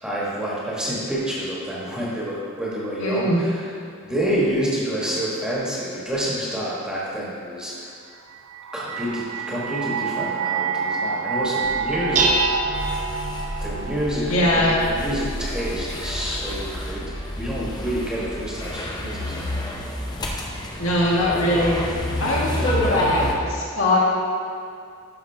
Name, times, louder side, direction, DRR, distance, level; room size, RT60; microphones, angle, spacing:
voice 1, 0.0-3.7 4.0-8.1 8.7-12.4 13.6-17.1 17.4-19.7 22.8-23.0, equal, 5° right, -7 dB, 1.5 m, -28 dB
voice 2, 3.0-3.4 14.3-14.7 20.8-21.8 22.2-24.0, left 1 dB, 75° left, -5 dB, 1.9 m, -21 dB
sound 1, 8.3-15.4, right 6 dB, 80° right, 0.5 m, -28 dB
Dishes pots and pans, 11.6-18.7, right 2 dB, 35° right, 0.7 m, -30 dB
sound 2, 12.7-23.3, left 1 dB, 20° left, 0.7 m, -30 dB
12.0 x 5.4 x 3.5 m, 2.4 s
head